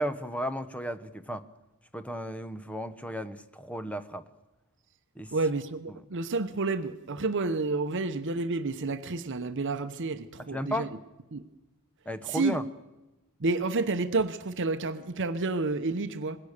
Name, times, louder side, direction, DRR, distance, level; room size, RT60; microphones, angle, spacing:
voice 1, 0.0-1.4 1.9-4.2 5.2-5.3 5.9-6.0 10.4-10.9 12.1-12.7, equal, 5° left, 0.9 m, -34 dB
voice 2, 5.3-10.9 11.3-11.4 12.3-12.5 13.4-16.4, right 3 dB, 55° right, 0.9 m, -30 dB
25.0 x 21.0 x 6.6 m
head